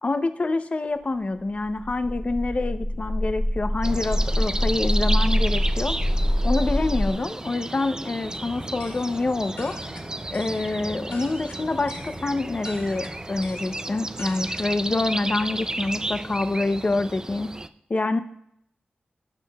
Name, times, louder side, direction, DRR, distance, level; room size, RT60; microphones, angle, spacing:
voice 1, 0.0-6.0 6.4-9.8 10.3-17.5 17.9-18.2, left 2 dB, 40° left, 10 dB, 0.6 m, -26 dB
sound 1, 1.6-7.1, equal, 20° left, 1.6 m, -24 dB
sound 2, 3.8-17.7, right 2 dB, 20° right, 0.4 m, -33 dB
sound 3, 8.5-15.0, left 2 dB, 80° left, 1.1 m, -43 dB
17.5 x 6.3 x 2.3 m, 0.72 s
wide cardioid pair, 85°, 3 cm